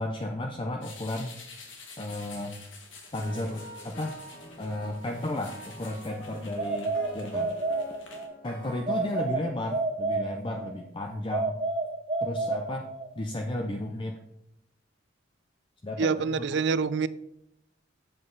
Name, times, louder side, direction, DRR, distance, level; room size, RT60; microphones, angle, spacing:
voice 1, 0.0-1.3 2.0-2.6 3.1-4.2 4.6-7.5 8.4-11.6 12.2-12.9 13.2-14.2 15.8-16.5, left 1 dB, 25° left, 0.6 m, -34 dB
sound 1, 0.8-8.3, left 4 dB, 80° left, 1.8 m, -49 dB
sound 2, 3.2-9.2, equal, 50° left, 1.7 m, -46 dB
sound 3, 6.6-8.3 8.9-10.8 11.3-13.2, right 3 dB, 30° right, 0.9 m, -30 dB
voice 2, 16.0-17.1, right 5 dB, 65° right, 0.4 m, -26 dB
7.9 x 7.5 x 3.9 m
head